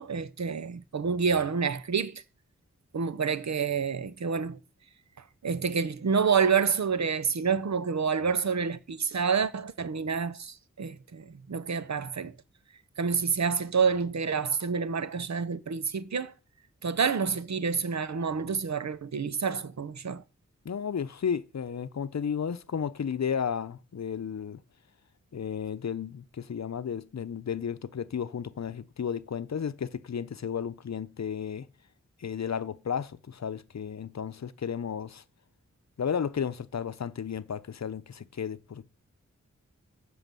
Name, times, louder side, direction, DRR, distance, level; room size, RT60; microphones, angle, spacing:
voice 1, 0.0-2.2 2.9-4.6 5.4-12.3 13.0-16.3 16.8-20.2, right 6 dB, 65° right, 0.8 m, -28 dB
voice 2, 20.6-24.6 25.3-31.7 32.2-35.2 36.0-38.9, left 7 dB, 65° left, 0.7 m, -33 dB
13.5 x 6.1 x 7.6 m
wide cardioid pair, 85°, 30 cm